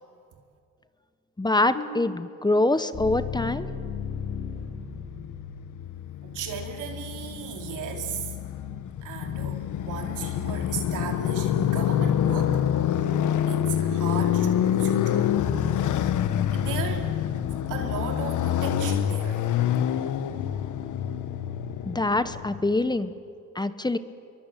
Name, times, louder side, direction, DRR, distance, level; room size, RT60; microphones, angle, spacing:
voice 1, 1.4-3.7 21.8-23.1 23.5-24.0, left 2 dB, 15° left, 12 dB, 1.2 m, -24 dB
sound 1, 1.7-5.8, left 5 dB, 40° left, 6.7 m, -35 dB
Motorcycle, 4.6-22.8, left 10 dB, 75° left, 1.4 m, -27 dB
voice 2, 6.2-8.3 9.0-12.6 13.5-15.3 16.5-17.1 17.7-19.5, right 6 dB, 90° right, 2 dB, 4.2 m, -36 dB
28.0 x 23.0 x 9.2 m, 2.4 s
cardioid pair, 90°, 30 cm